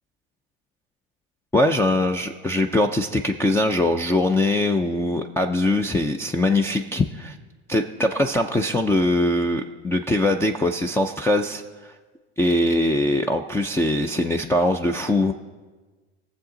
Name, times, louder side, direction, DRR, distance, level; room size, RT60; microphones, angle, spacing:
voice 1, 1.5-7.4 7.7-11.9 12.4-15.3, left 1 dB, 10° left, 5 dB, 0.4 m, -22 dB
18.5 x 7.2 x 3.8 m, 1.3 s
supercardioid pair, 110°, 33 cm